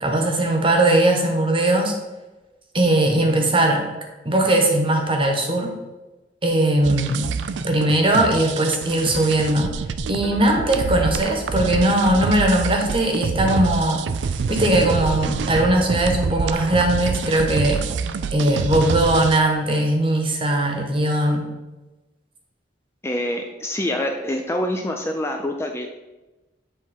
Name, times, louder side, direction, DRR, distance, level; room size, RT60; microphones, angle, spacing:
voice 1, 0.0-2.0 2.7-3.8 4.2-5.7 6.4-7.3 7.6-9.7 10.1-14.0 14.5-17.8 18.3-21.5, right 1 dB, 30° right, 2 dB, 1.1 m, -19 dB
sound 1, 6.8-19.4, right 5 dB, 85° right, 0.4 m, -27 dB
voice 2, 23.0-25.9, left 1 dB, 15° left, 3 dB, 0.4 m, -26 dB
8.0 x 3.6 x 4.3 m, 1.1 s
head